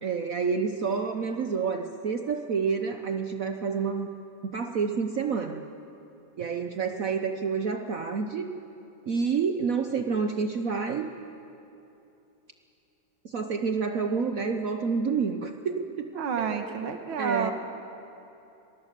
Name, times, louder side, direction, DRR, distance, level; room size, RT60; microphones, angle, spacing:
voice 1, 0.0-4.1 4.4-5.6 6.4-8.5 9.1-11.1 13.2-16.1 16.4-16.6 17.2-17.5, right 5 dB, 55° right, 5 dB, 1.0 m, -28 dB
voice 2, 16.2-17.5, right 6 dB, 80° right, 6 dB, 1.9 m, -29 dB
24.5 x 19.5 x 6.7 m, 2.9 s
omnidirectional pair, 2.3 m